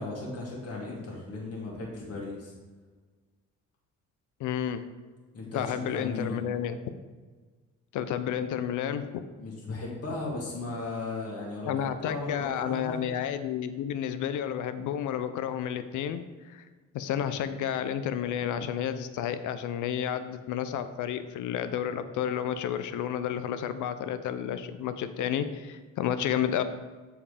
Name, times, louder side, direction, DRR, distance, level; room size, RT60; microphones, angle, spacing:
voice 1, 0.0-2.5 5.3-6.4 9.4-13.0, left 2 dB, 55° left, -4 dB, 2.0 m, -36 dB
voice 2, 4.4-4.8 5.5-6.8 7.9-9.2 11.7-16.6 16.9-26.6, left 9 dB, 80° left, 11 dB, 0.7 m, -31 dB
7.5 x 4.7 x 5.0 m, 1.4 s
cardioid pair, 90°, 30 cm